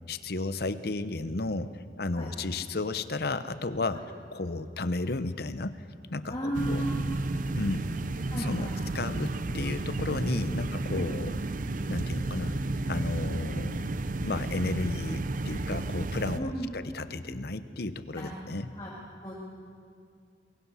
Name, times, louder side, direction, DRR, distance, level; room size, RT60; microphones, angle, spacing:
voice 1, 0.1-1.7 2.0-4.0 4.3-5.8 6.1-6.8 7.6-8.7 8.9-11.3 11.9-12.6 12.9-18.7, left 2 dB, 60° left, 12 dB, 0.9 m, -33 dB
voice 2, 6.3-7.1 8.3-8.8 10.9-11.4 16.4-16.7 18.1-18.3 18.7-18.9 19.2-19.3, right 1 dB, 25° left, -5 dB, 3.1 m, -35 dB
sound 1, 6.5-16.4, right 2 dB, 50° right, 0.7 m, -32 dB
23.5 x 22.5 x 5.7 m, 2.2 s
head